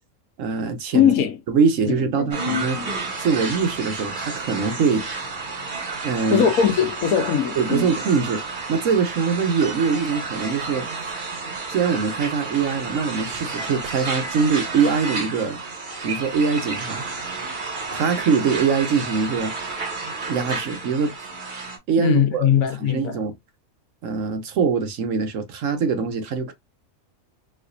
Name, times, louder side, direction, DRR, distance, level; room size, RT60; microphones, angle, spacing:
voice 1, 0.4-1.1 1.5-2.8 3.2-5.0 6.0-6.5 7.6-8.4 8.7-10.9 11.7-15.6 16.0-17.0 17.9-19.5 20.3-21.1 21.9-22.5 22.8-23.3 24.0-26.5, right 5 dB, 65° right, 1.1 m, -23 dB
voice 2, 0.9-1.4 1.8-2.3 2.7-2.9 6.3-7.9 22.0-23.2, left 8 dB, 80° left, 1.2 m, -20 dB
sound 1, 2.3-21.8, right 3 dB, 40° right, 1.1 m, -31 dB
4.3 x 2.6 x 2.5 m
omnidirectional pair, 1.5 m